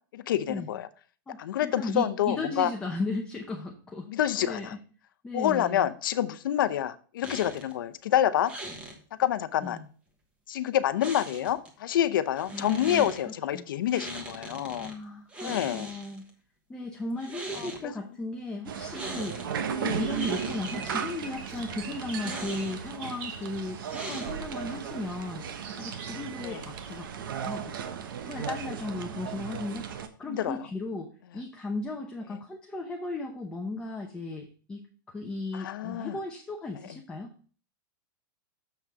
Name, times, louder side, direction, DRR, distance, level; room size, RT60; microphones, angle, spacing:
voice 1, 0.1-0.9 1.4-2.7 4.1-4.7 5.3-8.5 9.2-9.8 10.5-14.9 15.4-15.9 17.6-17.9 19.8-19.9 26.4-26.7 30.2-30.6 32.3-32.4 35.5-36.2, left 11 dB, 65° left, 13 dB, 0.8 m, -28 dB
voice 2, 1.3-4.1 4.4-4.8 5.2-5.9 9.6-9.9 12.5-13.1 13.5-13.7 14.8-16.2 16.7-19.4 19.8-25.5 25.8-27.1 27.4-27.9 28.3-34.8 35.1-37.3, left 2 dB, 5° left, 1 dB, 0.7 m, -36 dB
sound 1, 7.2-7.7 8.5-9.0 11.0-11.7 12.4-13.2 13.9-14.9 15.3-16.3 17.1-17.8 18.9-19.5 19.9-21.0 22.1-23.0 23.9-24.6, right 2 dB, 10° right, 1.3 m, -40 dB
sound 2, 18.7-30.1, right 7 dB, 65° right, 1.2 m, -36 dB
sound 3, 19.9-25.0 25.6-27.1, right 4 dB, 35° right, 1.7 m, -46 dB
7.1 x 6.1 x 4.7 m, 0.41 s
supercardioid pair, 170°, 12 cm